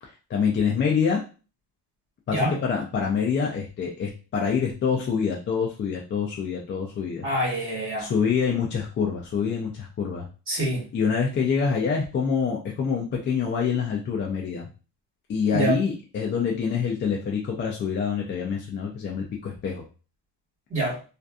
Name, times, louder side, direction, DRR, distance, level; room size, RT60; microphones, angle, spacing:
voice 1, 0.0-1.2 2.3-7.3 8.0-10.3 10.9-14.7 15.3-19.8, left 6 dB, 30° left, -1 dB, 0.4 m, -26 dB
voice 2, 7.2-8.1 10.5-10.9 15.5-15.8 20.7-21.0, right 1 dB, 30° right, -4 dB, 1.4 m, -26 dB
2.5 x 2.5 x 2.3 m, 0.34 s
cardioid pair, 150°, 42 cm